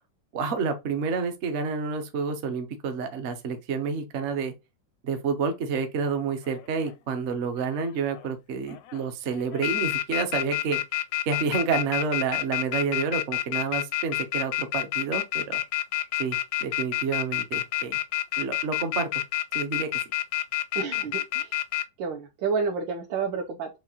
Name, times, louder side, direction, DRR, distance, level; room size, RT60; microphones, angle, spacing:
voice 1, 0.3-4.5 5.0-10.8 11.3-15.6 16.2-18.0 18.4-19.1 19.5-19.9, right 5 dB, 55° right, 0.8 m, -29 dB
sound 1, 6.5-6.9 7.6-8.2 8.7-9.0 9.4-21.8, left 13 dB, 75° left, 0.9 m, -28 dB
voice 2, 20.7-21.5 22.0-23.7, right 5 dB, 80° right, 1.4 m, -30 dB
6.2 x 2.4 x 2.8 m
omnidirectional pair, 2.1 m